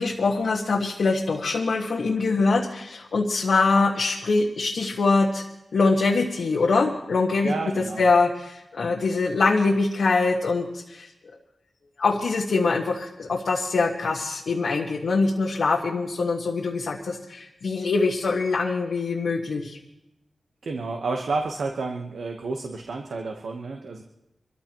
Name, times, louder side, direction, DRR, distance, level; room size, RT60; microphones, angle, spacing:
voice 1, 0.0-5.4 5.7-7.5 8.0-11.1 12.0-19.8, left 3 dB, 85° left, -2 dB, 1.4 m, -23 dB
voice 2, 7.4-8.0 20.6-24.0, right 3 dB, 85° right, 3 dB, 1.1 m, -30 dB
26.0 x 14.0 x 3.0 m, 0.88 s
cardioid pair, 65°, 0 cm